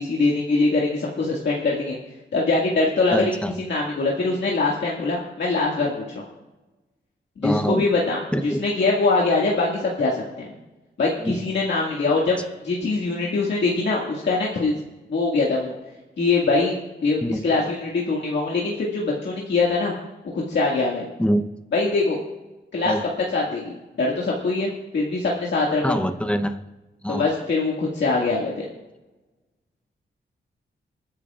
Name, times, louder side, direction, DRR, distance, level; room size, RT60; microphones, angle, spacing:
voice 1, 0.0-2.0 2.3-3.3 3.7-6.2 7.4-8.2 8.6-10.5 11.0-12.4 12.6-14.7 15.1-15.8 16.2-16.7 17.0-19.9 20.3-21.1 21.7-22.2 22.7-22.9 23.3-23.7 24.0-25.9 27.1-28.7, left 3 dB, 70° left, -4 dB, 2.0 m, -23 dB
voice 2, 3.1-3.6 7.4-7.9 8.3-8.6 11.2-11.4 17.2-17.4 21.2-21.5 22.8-23.0 25.8-26.6 27.0-27.2, equal, 5° left, 8 dB, 0.8 m, -24 dB
28.0 x 9.9 x 2.4 m, 1.1 s
wide cardioid pair, 120°, 19 cm